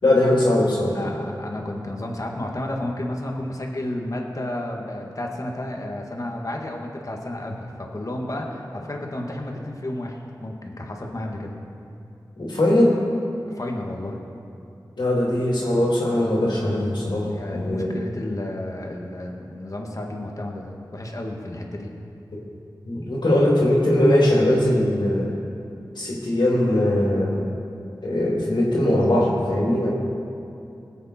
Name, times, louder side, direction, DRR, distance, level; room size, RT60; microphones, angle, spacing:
voice 1, 0.0-1.0 12.4-13.0 15.0-18.0 22.8-25.3 25.9-27.4 28.0-29.9, left 1 dB, 90° left, -4 dB, 3.1 m, -20 dB
voice 2, 0.9-11.5 13.6-14.2 17.3-21.9, left 1 dB, 50° left, 1 dB, 1.8 m, -32 dB
20.5 x 8.3 x 4.4 m, 2.6 s
wide cardioid pair, 55°, 8 cm